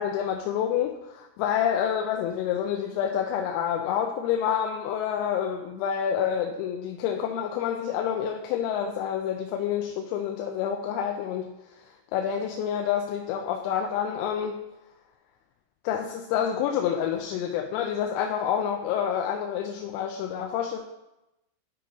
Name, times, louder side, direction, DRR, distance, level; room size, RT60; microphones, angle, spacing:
voice 1, 0.0-11.5 12.1-14.6 15.9-20.8, left 8 dB, 90° left, 2 dB, 3.3 m, -28 dB
12.5 x 5.1 x 2.9 m, 0.95 s
omnidirectional pair, 5.9 m